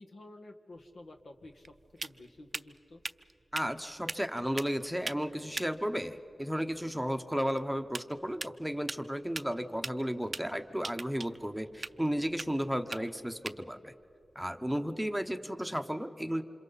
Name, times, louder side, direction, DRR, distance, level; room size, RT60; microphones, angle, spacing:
voice 1, 0.0-1.7 2.0-3.0 12.8-13.2, left 2 dB, 85° left, 3 dB, 1.7 m, -51 dB
sound 1, 0.7-15.4, right 3 dB, 45° right, 0.5 m, -45 dB
voice 2, 3.5-13.9 14.3-16.4, equal, ahead, 7 dB, 0.9 m, -34 dB
28.5 x 27.0 x 4.1 m, 2.8 s
wide cardioid pair, 110°, 0 cm